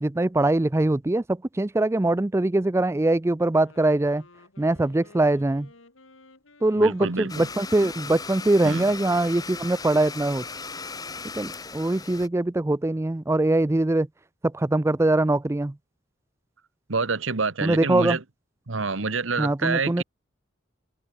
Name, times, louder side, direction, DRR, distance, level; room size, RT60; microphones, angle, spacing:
voice 1, 0.0-4.2 4.6-5.7 6.6-10.4 11.4-14.1 14.4-15.7 17.6-18.2 19.4-20.0, right 2 dB, 15° right, 0.4 m, -22 dB
Wind instrument woodwind instrument, 3.4-11.3, left 2 dB, 90° left, 3.6 m, -54 dB
voice 2, 6.8-7.5 8.6-8.9 16.9-18.2 18.7-20.0, right 4 dB, 80° right, 1.4 m, -27 dB
Domestic sounds home sounds, 7.3-12.3, left 4 dB, 20° left, 0.9 m, -37 dB
head